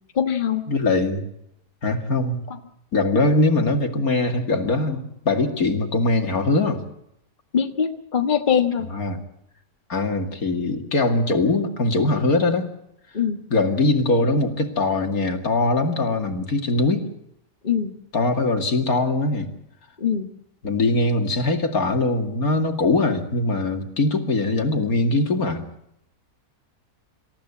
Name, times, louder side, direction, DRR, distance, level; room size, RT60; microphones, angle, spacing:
voice 1, 0.1-0.7 7.5-8.9 13.1-13.4 17.6-17.9 20.0-20.3, left 7 dB, 30° left, 5 dB, 1.5 m, -22 dB
voice 2, 0.7-1.2 1.8-2.4 2.9-6.8 8.9-9.2 9.9-12.7 13.5-17.0 18.1-19.5 20.6-25.6, left 2 dB, 65° left, 5 dB, 2.9 m, -21 dB
26.5 x 15.0 x 8.7 m, 0.79 s
omnidirectional pair, 1.7 m